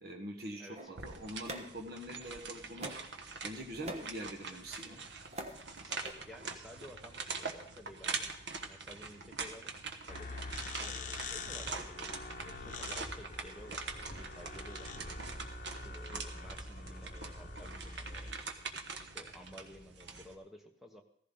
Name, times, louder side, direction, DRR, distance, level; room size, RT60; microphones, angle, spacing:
voice 1, 0.0-2.9 3.4-5.0 16.1-16.2, equal, 55° right, 2 dB, 1.4 m, -44 dB
voice 2, 0.6-0.9 5.8-6.0 6.3-8.4 8.6-9.7 10.1-10.4 10.8-15.2 15.8-18.3 19.0-21.0, left 1 dB, ahead, 3 dB, 1.3 m, -54 dB
sound 1, 0.7-2.3 2.8-3.2 3.6-4.2 4.9-5.6 5.9-6.1, right 2 dB, 35° right, 1.3 m, -44 dB
sound 2, 1.0-20.3, right 4 dB, 80° right, 1.3 m, -44 dB
sound 3, 10.1-18.3, left 3 dB, 45° left, 1.2 m, -44 dB
15.5 x 15.0 x 3.9 m, 0.62 s
head